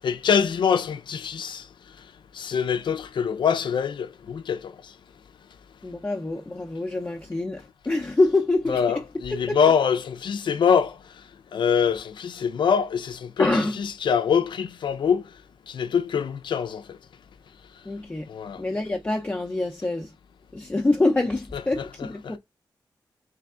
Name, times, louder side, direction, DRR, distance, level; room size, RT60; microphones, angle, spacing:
voice 1, 0.0-1.6 2.4-4.6 8.7-10.9 11.5-13.5 13.8-15.2 15.7-16.8 18.3-18.6 21.8-21.9, left 7 dB, 85° left, 0.5 m, -24 dB
voice 2, 5.8-9.0 9.3-9.6 13.4-13.8 17.9-18.3 18.6-20.1 20.5-22.4, left 2 dB, 20° left, 0.6 m, -25 dB
3.4 x 3.3 x 3.6 m
wide cardioid pair, 120°, 8 cm